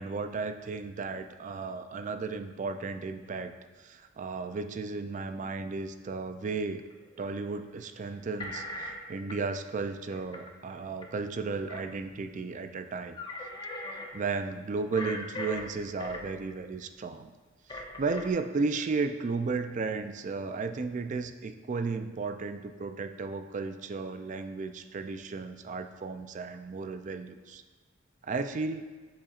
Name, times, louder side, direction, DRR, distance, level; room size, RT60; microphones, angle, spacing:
voice 1, 0.0-3.5 3.8-6.8 7.2-13.2 14.1-17.3 17.7-27.6 28.2-28.8, right 4 dB, 40° right, 9 dB, 0.4 m, -34 dB
sound 1, 6.9-7.5 8.4-9.0 9.3-9.4 10.1-10.7 11.0-11.1 11.5-12.0 12.8-12.9 13.1-14.1 14.9-16.4 17.7-18.3, left 2 dB, 25° left, 0.6 m, -39 dB
7.6 x 7.0 x 2.4 m, 1.4 s
head